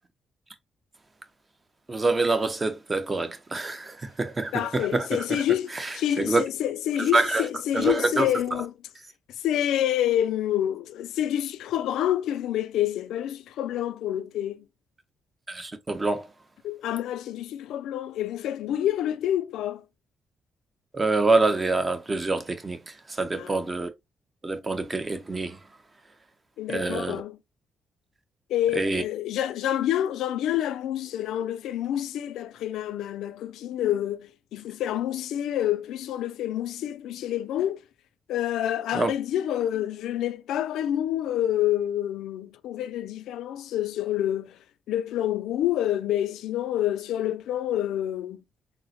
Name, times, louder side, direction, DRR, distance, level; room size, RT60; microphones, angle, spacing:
voice 1, 1.9-5.4 5.7-6.4 7.0-7.5 7.7-8.3 15.5-16.3 20.9-22.8 23.2-23.9 24.4-25.6 26.7-27.2 28.8-29.0 38.9-39.1, right 3 dB, 30° right, 0.7 m, -26 dB
voice 2, 4.5-8.7 9.4-14.7 16.6-19.8 23.4-23.5 26.6-27.4 28.5-37.8 38.3-44.6 44.9-48.4, left 11 dB, 85° left, 0.3 m, -28 dB
3.7 x 2.1 x 2.7 m
cardioid pair, 75°, 0 cm